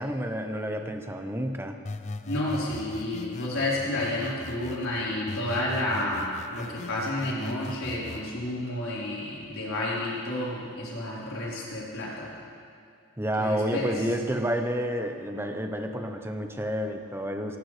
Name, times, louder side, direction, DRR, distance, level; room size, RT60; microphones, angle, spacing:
voice 1, 0.0-1.8 13.2-17.6, equal, 10° right, 5 dB, 0.8 m, -30 dB
sound 1, 1.8-4.9 5.3-8.3, left 3 dB, 35° left, 0.5 m, -40 dB
voice 2, 2.3-12.3 13.4-13.9 14.2-14.3, left 1 dB, 80° left, -7 dB, 4.2 m, -31 dB
17.5 x 17.5 x 3.3 m, 2.5 s
head